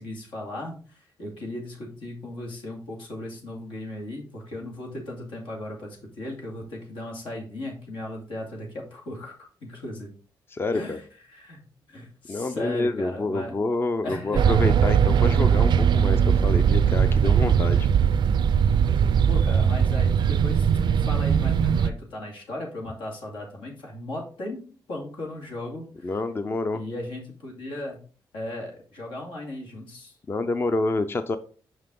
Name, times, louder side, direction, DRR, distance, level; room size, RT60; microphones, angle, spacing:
voice 1, 0.0-10.1 10.7-11.0 11.3-13.5 14.0-14.5 17.1-17.2 19.3-24.6 24.9-26.2 26.7-28.0 28.3-30.2, left 1 dB, 85° left, -1 dB, 2.4 m, -36 dB
voice 2, 10.5-11.0 12.3-17.9 26.0-26.8 30.3-31.4, left 2 dB, 30° left, 10 dB, 0.5 m, -28 dB
sound 1, 14.3-21.9, right 7 dB, 65° right, 0.4 m, -20 dB
5.8 x 5.6 x 3.7 m, 0.39 s
cardioid pair, 90°, 8 cm